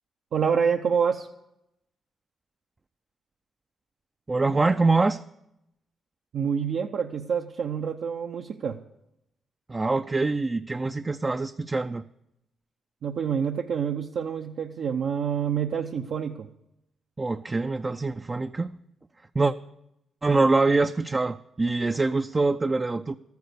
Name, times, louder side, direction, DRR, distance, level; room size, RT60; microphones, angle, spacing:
voice 1, 0.3-1.3 6.3-8.8 13.0-16.5, right 7 dB, 70° right, 2 dB, 0.8 m, -27 dB
voice 2, 4.3-5.2 9.7-12.0 17.2-18.7 19.3-19.5 20.2-23.2, right 3 dB, 25° right, 8 dB, 0.4 m, -24 dB
13.0 x 9.5 x 6.7 m, 0.82 s
cardioid pair, 70°, 0 cm